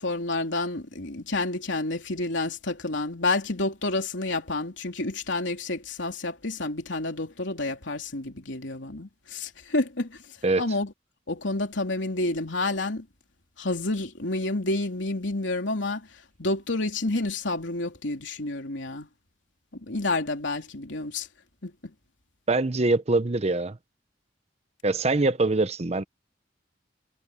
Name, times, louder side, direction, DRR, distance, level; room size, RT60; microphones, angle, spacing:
voice 1, 0.0-10.2 10.6-10.9 11.3-13.0 13.6-16.1 16.4-19.1 19.9-21.3 21.6-21.9, left 2 dB, 75° left, 3.3 m, -29 dB
voice 2, 22.5-23.8 24.8-26.0, right 2 dB, 35° right, 0.8 m, -23 dB
head